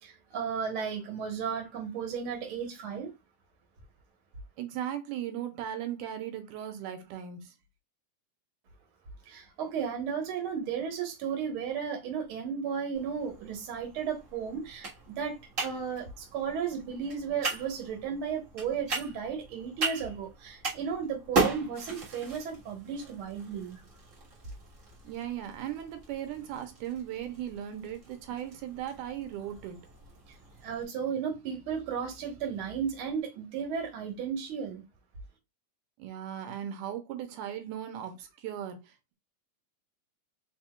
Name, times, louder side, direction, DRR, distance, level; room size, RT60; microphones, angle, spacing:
voice 1, 0.0-3.1 9.2-23.8 30.3-30.4 30.6-34.8, right 7 dB, 55° right, 1.7 m, -34 dB
voice 2, 4.6-7.5 25.0-29.8 36.0-39.1, right 10 dB, 85° right, 2.2 m, -37 dB
sound 1, 12.9-30.8, right 3 dB, 40° right, 1.2 m, -38 dB
4.3 x 4.3 x 2.3 m
omnidirectional pair, 3.6 m